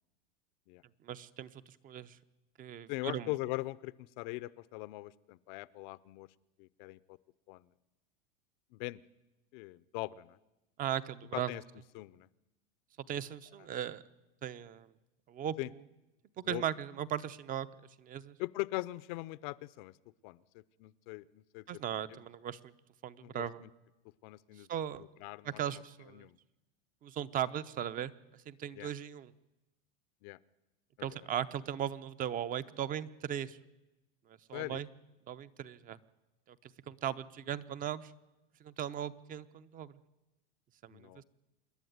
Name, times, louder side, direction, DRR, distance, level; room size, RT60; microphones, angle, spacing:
voice 1, 1.0-1.5 1.8-2.2 2.6-3.3 10.8-11.5 13.1-14.0 14.4-14.9 15.3-15.6 16.4-17.7 18.0-18.3 21.7-22.6 23.0-23.6 24.7-25.0 25.4-26.2 27.0-28.1 28.5-29.3 31.0-33.6 34.5-34.9 35.3-36.0 36.9-38.1 38.6-40.0 40.8-41.2, right 10 dB, 30° right, 15 dB, 0.8 m, -37 dB
voice 2, 2.9-6.3 6.6-7.2 7.5-7.7 8.7-9.0 9.5-10.4 11.3-11.6 11.9-12.3 15.6-15.7 16.4-16.6 18.4-19.9 20.2-21.8 22.1-22.3 23.2-23.7 24.2-24.7 25.0-25.8 26.1-26.4 28.7-28.9 30.2-30.4 31.0-31.3 34.5-34.8 40.9-41.2, left 21 dB, 55° left, 19 dB, 0.7 m, -41 dB
27.0 x 11.0 x 9.5 m, 1.0 s
supercardioid pair, 130°, 29 cm